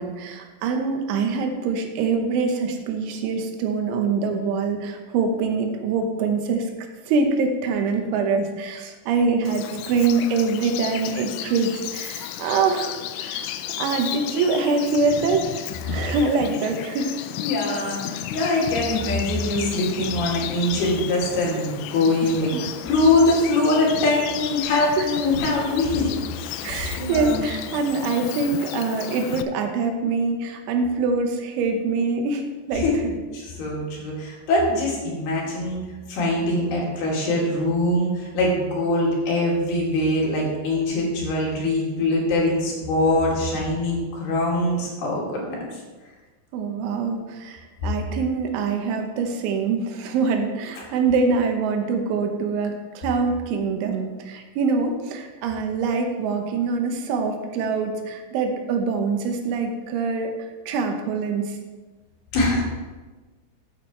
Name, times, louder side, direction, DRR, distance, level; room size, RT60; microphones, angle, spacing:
voice 1, 0.0-6.7 7.1-13.5 13.8-17.2 22.5-22.6 25.0-25.1 26.6-32.8 46.5-60.3 60.7-61.6, right 4 dB, 85° right, 4 dB, 3.5 m, -24 dB
Bird vocalization bird call bird song, 9.5-29.4, left 12 dB, 90° left, 3.0 m, -34 dB
voice 2, 17.4-27.4 32.7-33.0 33.3-35.8 36.1-45.6 62.3-62.6, left 2 dB, 60° left, -4 dB, 4.0 m, -23 dB
13.0 x 8.9 x 3.2 m, 1.3 s
omnidirectional pair, 5.5 m